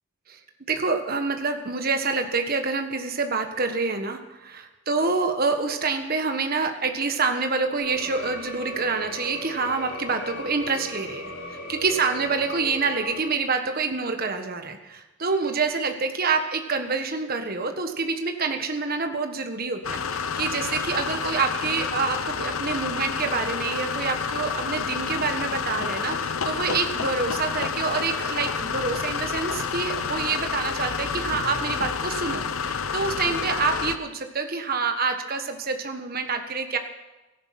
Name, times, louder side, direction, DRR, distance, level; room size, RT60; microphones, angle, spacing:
voice 1, 0.7-11.3 11.7-36.8, right 4 dB, 45° right, 6 dB, 1.4 m, -27 dB
sound 1, 7.8-13.2, left 1 dB, 55° left, 6.3 m, -37 dB
sound 2, 19.8-34.0, left 6 dB, 75° left, 0.9 m, -29 dB
17.0 x 14.0 x 5.9 m, 1.1 s
head